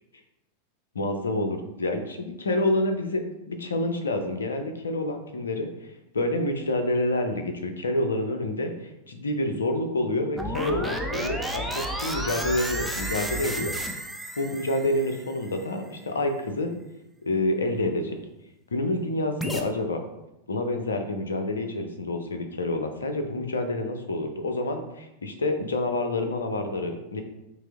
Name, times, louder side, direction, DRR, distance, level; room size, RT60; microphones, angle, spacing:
voice 1, 0.9-5.7 6.1-13.8 14.4-16.7 17.2-18.2 18.7-20.0 20.5-27.2, left 1 dB, 70° left, 5 dB, 0.5 m, -28 dB
sound 1, 10.4-15.6 19.4-19.6, equal, ahead, 0.4 m, -32 dB
5.7 x 2.0 x 3.4 m, 0.91 s
figure-of-eight pair, 90°, 0 cm